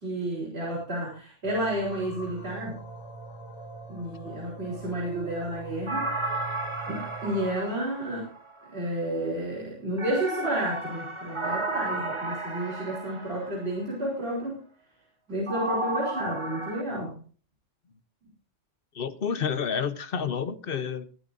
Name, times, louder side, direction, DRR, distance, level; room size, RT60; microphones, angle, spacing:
voice 1, 0.0-2.8 3.9-6.1 6.9-8.3 8.7-14.6 15.3-17.2, right 1 dB, 55° right, -4 dB, 3.9 m, -31 dB
sound 1, 1.4-7.6, right 3 dB, 25° left, 5.7 m, -43 dB
sound 2, 5.9-8.7 10.0-13.8 15.5-16.8, right 2 dB, 25° right, 1.3 m, -33 dB
voice 2, 18.9-21.0, left 7 dB, 50° left, 13 dB, 1.0 m, -29 dB
22.0 x 12.0 x 2.6 m, 0.38 s
omnidirectional pair, 1.3 m